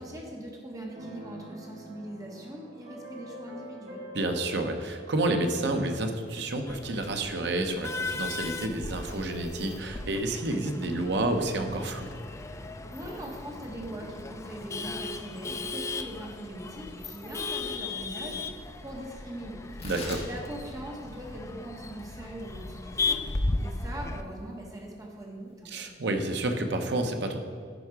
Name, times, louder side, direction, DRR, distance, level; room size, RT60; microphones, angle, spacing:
voice 1, 0.0-4.1 12.9-25.7, right 1 dB, 20° right, -2 dB, 1.4 m, -41 dB
Keyboard (musical), 0.9-8.4, left 1 dB, 40° right, 1.8 m, -47 dB
voice 2, 4.1-12.1 19.8-20.2 25.7-27.4, right 2 dB, 70° right, 5 dB, 0.8 m, -29 dB
Male speech man speaking / Laughter / Chatter, 6.7-24.2, left 3 dB, 15° left, 0.3 m, -36 dB
Tearing, 19.6-26.4, left 2 dB, 35° left, 1.4 m, -46 dB
10.0 x 4.8 x 4.7 m, 2.2 s
head